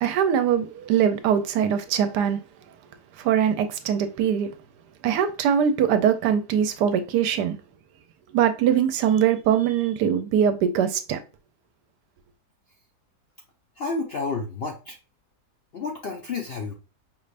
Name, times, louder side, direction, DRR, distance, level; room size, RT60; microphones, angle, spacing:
voice 1, 0.0-2.4 3.2-4.5 5.0-7.5 8.3-11.2, right 8 dB, 80° right, 1.2 m, -22 dB
voice 2, 13.8-15.0 15.7-16.7, left 3 dB, 65° left, 0.6 m, -30 dB
5.4 x 3.3 x 2.4 m
omnidirectional pair, 1.8 m